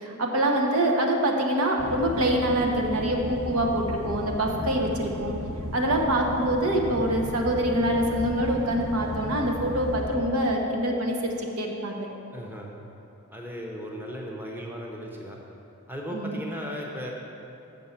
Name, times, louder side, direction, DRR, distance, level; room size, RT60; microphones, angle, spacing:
voice 1, 0.0-5.3 5.7-12.1 16.1-16.4, right 1 dB, 80° right, 1 dB, 1.0 m, -25 dB
sound 1, 1.8-10.1, left 1 dB, 60° right, 2.1 m, -35 dB
voice 2, 12.3-12.7 13.3-15.4 15.9-17.1, equal, 10° right, -1 dB, 0.7 m, -36 dB
6.8 x 5.4 x 7.1 m, 2.8 s
head